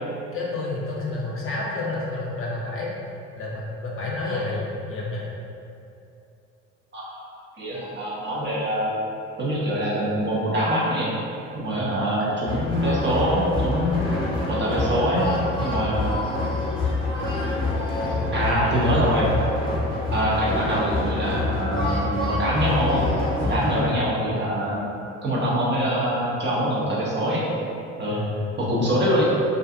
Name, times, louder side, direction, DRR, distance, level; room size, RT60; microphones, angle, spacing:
voice 1, 0.3-2.9 3.3-5.2 11.7-12.4 13.9-14.5 15.7-16.1 18.1-19.0 23.6-23.9 28.1-28.5, left 2 dB, 35° left, -4 dB, 0.6 m, -31 dB
voice 2, 6.9-8.9 9.4-11.1 11.5-14.0 14.5-15.3 15.6-16.2 18.3-19.3 20.1-23.0 23.4-24.8 25.2-27.5 28.0-28.2 28.6-29.2, equal, 30° right, -6 dB, 0.7 m, -24 dB
sound 1, 12.5-23.8, left 2 dB, 10° left, 1.0 m, -26 dB
2.4 x 2.4 x 2.5 m, 2.6 s
hypercardioid pair, 65°, 36 cm